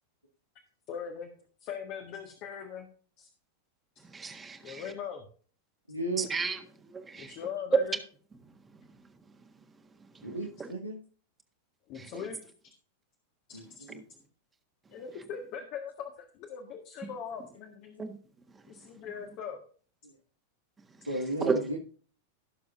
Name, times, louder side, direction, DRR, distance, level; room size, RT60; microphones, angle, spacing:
voice 1, 0.9-1.3 1.6-2.9 3.2-3.3 3.9-4.0 4.6-5.2 7.1-7.9 11.9-12.7 13.5-13.8 14.9-18.1 18.7-19.6, left 7 dB, 40° left, 1.7 m, -40 dB
voice 2, 4.0-4.9 6.2-7.3 8.7-9.0 9.3-9.4 10.0-10.7 11.9-12.2 13.9-14.0 18.0-18.2 18.5-18.9 20.8-21.1 21.4-21.6, right 4 dB, 15° right, 1.6 m, -36 dB
voice 3, 5.9-6.3 10.2-11.0 13.5-14.0 20.0-20.2 21.1-21.8, right 2 dB, 90° right, 1.8 m, -34 dB
17.5 x 6.9 x 2.6 m
figure-of-eight pair, 90°, 0 cm